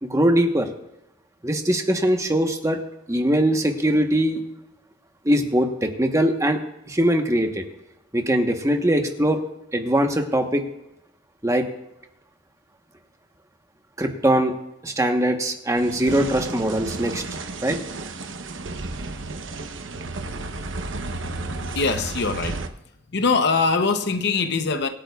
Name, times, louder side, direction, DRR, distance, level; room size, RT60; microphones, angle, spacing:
voice 1, 0.0-0.7 1.4-2.8 3.1-4.4 5.2-6.6 6.9-7.6 8.1-9.4 9.7-10.6 11.4-11.6 14.0-14.5 14.8-17.2 17.6-17.8, right 1 dB, 15° right, 1.1 m, -21 dB
sound 1, 15.7-22.7, right 2 dB, 75° right, 0.9 m, -32 dB
voice 2, 21.7-22.7 23.1-24.9, left 4 dB, 60° left, 0.8 m, -22 dB
24.5 x 8.7 x 2.4 m
head